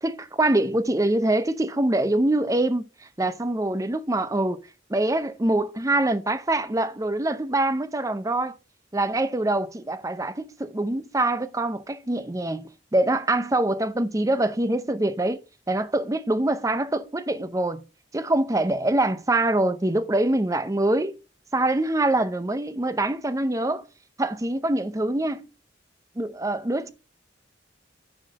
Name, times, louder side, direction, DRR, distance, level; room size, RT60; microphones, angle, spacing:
voice 1, 0.0-2.9 3.2-4.6 4.9-8.6 8.9-15.4 15.7-17.8 18.1-21.2 21.5-23.8 24.2-25.5 26.2-26.9, right 1 dB, 20° right, 0.6 m, -24 dB
9.9 x 4.0 x 6.3 m
head